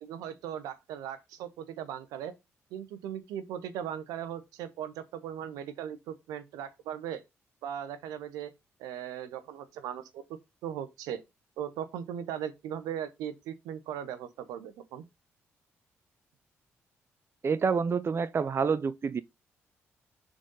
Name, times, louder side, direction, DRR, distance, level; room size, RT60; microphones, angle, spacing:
voice 1, 0.0-2.3 2.7-7.2 7.6-8.5 8.8-10.2 10.6-11.2 11.6-15.0, right 9 dB, 80° right, 0.8 m, -38 dB
voice 2, 17.4-19.2, right 5 dB, 40° right, 0.5 m, -28 dB
6.1 x 4.1 x 5.4 m
supercardioid pair, 55°, 6 cm